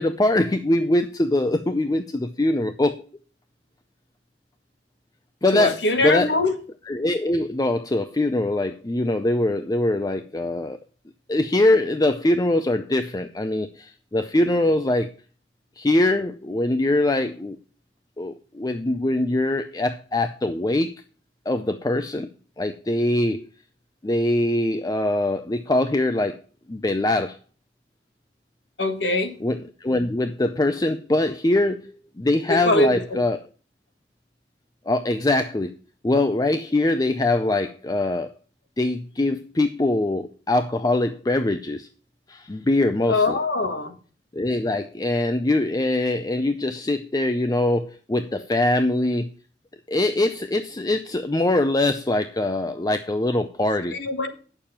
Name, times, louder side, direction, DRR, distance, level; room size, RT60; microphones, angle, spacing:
voice 1, 0.0-3.0 5.4-5.8 6.0-6.3 6.9-10.8 11.3-15.1 15.8-17.6 18.2-20.9 21.5-22.3 22.6-23.5 24.0-26.4 26.7-27.4 29.4-33.4 34.9-35.7 36.0-38.3 38.8-41.9 42.3-43.4 44.3-49.3 49.9-54.0, left 1 dB, 20° left, 9 dB, 0.5 m, -23 dB
voice 2, 5.5-6.5 28.8-29.3 32.5-33.2 43.1-44.0 53.9-54.3, left 2 dB, 75° left, 7 dB, 1.6 m, -22 dB
8.9 x 6.8 x 5.6 m, 0.39 s
head